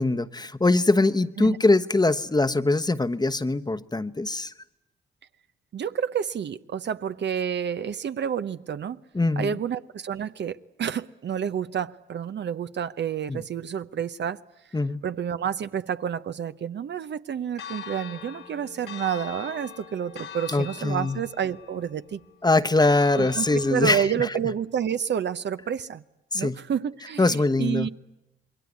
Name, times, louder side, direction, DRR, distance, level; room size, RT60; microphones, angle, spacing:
voice 1, 0.0-4.5 9.1-9.5 13.3-13.4 14.7-15.0 20.5-21.2 22.4-24.0 26.3-26.6 27.2-27.9, left 2 dB, 20° left, 1.1 m, -22 dB
voice 2, 5.7-9.0 9.4-14.4 15.0-22.2 23.2-26.0 26.3-27.9, right 8 dB, 60° right, 0.9 m, -29 dB
Church bell, 17.6-24.1, left 8 dB, 90° left, 3.2 m, -42 dB
27.0 x 22.0 x 9.6 m
supercardioid pair, 60°, 20 cm